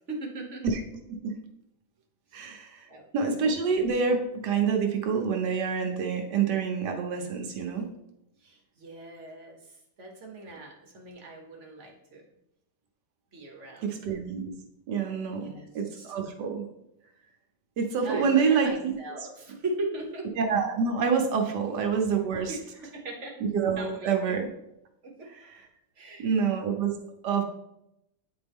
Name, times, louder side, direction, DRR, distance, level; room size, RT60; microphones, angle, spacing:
voice 1, 0.1-0.6 2.3-2.5 2.9-3.1 8.4-12.2 13.3-14.0 15.4-16.2 18.0-20.3 21.5-21.6 22.5-23.4 23.8-24.4 25.0-25.6 25.9-26.3, right 2 dB, 50° right, 1 dB, 1.3 m, -39 dB
voice 2, 2.3-2.8 3.1-7.9 13.8-14.5 14.9-16.6 17.8-18.9 20.4-22.5 23.5-24.5 25.3-25.5 26.2-27.0 27.2-27.4, right 6 dB, 80° right, 3 dB, 1.5 m, -27 dB
9.3 x 4.4 x 3.5 m, 0.83 s
omnidirectional pair, 1.8 m